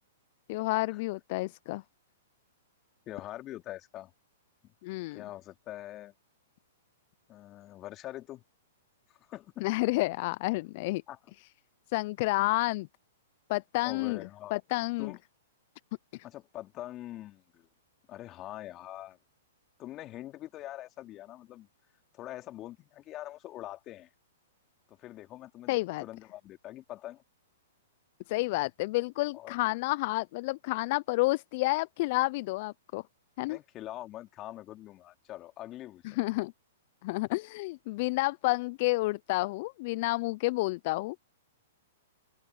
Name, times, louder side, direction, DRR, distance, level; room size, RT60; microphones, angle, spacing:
voice 1, 0.5-1.8 4.8-5.2 9.6-11.0 11.9-12.9 13.5-14.2 14.5-15.1 16.1-16.2 25.7-26.0 28.3-33.0 33.4-33.6 36.0-36.5 37.0-41.2, left 22 dB, 50° left, 0.6 m, -30 dB
voice 2, 3.1-4.1 4.6-4.7 5.1-6.1 7.3-8.4 9.1-9.7 11.1-11.2 13.8-14.5 15.0-15.2 16.2-17.7 18.1-19.2 19.8-21.7 22.1-24.1 24.9-27.2 29.3-29.5 33.5-36.2, left 14 dB, 30° left, 2.8 m, -44 dB
hypercardioid pair, 115°, 0 cm